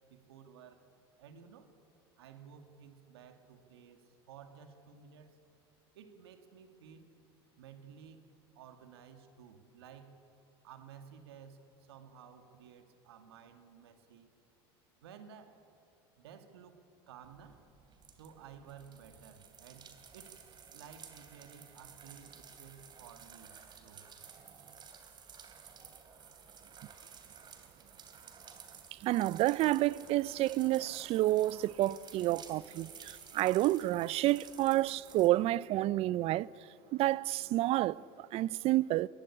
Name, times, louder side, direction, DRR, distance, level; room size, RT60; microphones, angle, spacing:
voice 1, 0.1-0.9 1.2-1.7 2.2-5.4 5.9-7.1 7.6-8.2 8.6-10.2 10.6-14.3 15.0-15.6 16.2-17.6 18.2-24.0, right 7 dB, 85° right, 2.1 m, -54 dB
sound 1, 17.2-35.3, right 6 dB, 35° right, 3.2 m, -54 dB
voice 2, 29.0-36.5 36.9-39.1, right 16 dB, 50° right, 0.5 m, -29 dB
22.0 x 16.5 x 9.9 m
hypercardioid pair, 95°, 13 cm